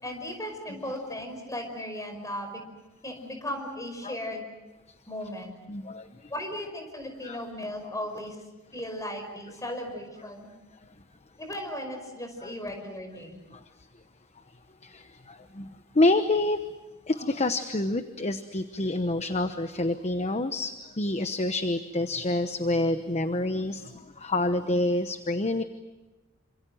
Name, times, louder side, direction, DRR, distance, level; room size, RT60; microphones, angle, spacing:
voice 1, 0.0-2.6 3.0-4.5 5.1-5.6 6.3-8.4 8.7-10.5 11.4-13.4, left 1 dB, 15° left, 5 dB, 5.3 m, -36 dB
voice 2, 5.7-6.3 7.2-7.4 12.4-12.5 13.5-13.6 14.8-15.7 15.9-16.6 17.1-25.6, left 2 dB, 30° left, 9 dB, 1.0 m, -27 dB
28.0 x 26.5 x 7.8 m, 1.1 s
head